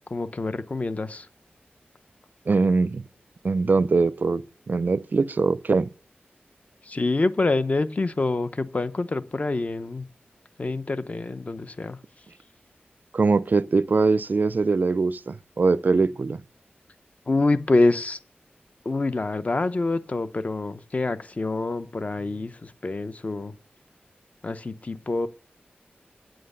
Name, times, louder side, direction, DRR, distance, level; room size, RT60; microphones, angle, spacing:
voice 1, 0.1-1.3 6.8-10.1 10.6-12.0 17.3-18.2 18.8-23.5 24.4-25.3, left 2 dB, 35° left, 0.7 m, -26 dB
voice 2, 2.5-3.0 3.4-5.9 13.1-16.4, right 4 dB, 50° right, 0.4 m, -22 dB
8.9 x 7.7 x 6.6 m
wide cardioid pair, 90°, 4 cm